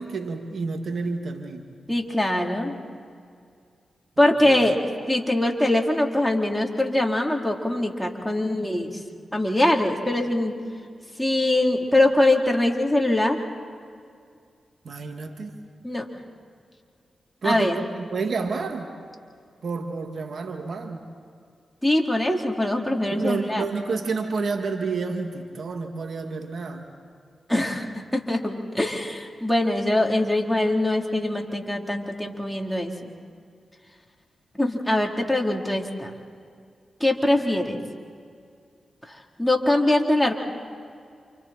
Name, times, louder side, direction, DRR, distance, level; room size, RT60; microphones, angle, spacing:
voice 1, 0.0-1.6 4.2-4.6 14.8-15.5 17.4-18.9 19.6-21.0 23.1-26.9, right 4 dB, 70° right, 4 dB, 2.5 m, -29 dB
voice 2, 1.9-2.7 4.2-4.8 5.1-8.9 9.3-10.5 11.2-13.4 15.8-16.1 17.4-17.8 21.8-23.7 27.5-33.1 34.6-36.1 37.0-37.8 39.1-40.3, left 1 dB, 5° left, 0 dB, 4.0 m, -23 dB
29.0 x 29.0 x 4.5 m, 2.2 s
supercardioid pair, 40°, 0 cm